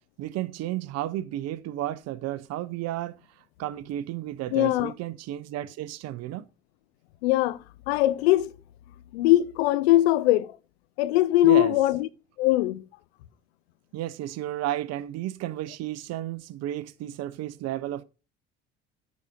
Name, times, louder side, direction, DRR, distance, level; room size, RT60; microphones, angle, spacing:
voice 1, 0.2-3.2 3.6-6.4 11.4-11.8 13.9-18.0, right 13 dB, 55° right, 0.7 m, -32 dB
voice 2, 4.5-4.9 7.2-7.6 7.9-8.5 9.1-10.5 11.0-12.1 12.4-12.8, left 15 dB, 75° left, 0.6 m, -21 dB
9.5 x 5.3 x 4.0 m
hypercardioid pair, 60°, 31 cm